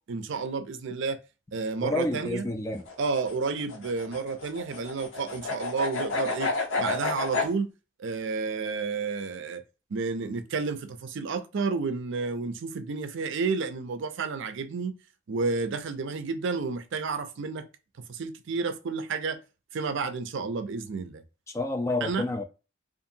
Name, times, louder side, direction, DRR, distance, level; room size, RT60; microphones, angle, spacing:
voice 1, 0.1-1.2 1.5-2.5 3.0-6.5 6.8-7.7 8.0-9.6 9.9-14.9 15.3-17.6 18.1-19.4 19.7-21.2 22.0-22.3, right 4 dB, 65° right, 0.5 m, -31 dB
voice 2, 1.8-2.8 21.5-22.4, left 2 dB, 15° left, 0.3 m, -29 dB
sound 1, 2.8-7.5, left 3 dB, 65° left, 0.8 m, -31 dB
2.7 x 2.5 x 2.6 m
head